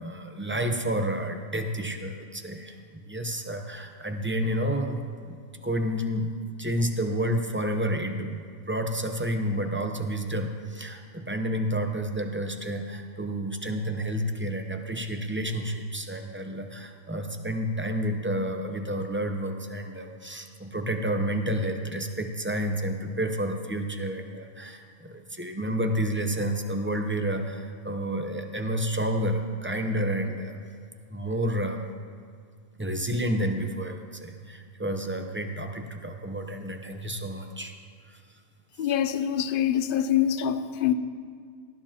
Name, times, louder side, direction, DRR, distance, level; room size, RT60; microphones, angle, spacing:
voice 1, 0.0-6.3 6.6-30.6 31.1-31.8 32.8-37.7 38.1-38.2, equal, 10° right, 0.7 m, -30 dB
voice 2, 38.8-40.9, left 10 dB, 55° left, 0.7 m, -25 dB
18.5 x 13.0 x 2.9 m
omnidirectional pair, 1.3 m